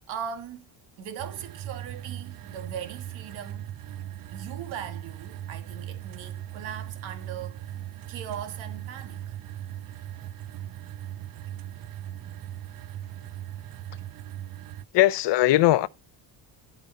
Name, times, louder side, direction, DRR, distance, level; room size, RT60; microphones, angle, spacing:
voice 1, 0.1-0.7 1.0-3.7 4.3-7.8 8.1-9.4 14.6-14.8, right 8 dB, 90° right, 2.3 m, -39 dB
sound 1, 1.2-14.8, right 12 dB, 50° right, 0.6 m, -39 dB
voice 2, 14.9-15.9, left 15 dB, 70° left, 0.8 m, -19 dB
13.5 x 5.2 x 4.4 m
cardioid pair, 125°, 44 cm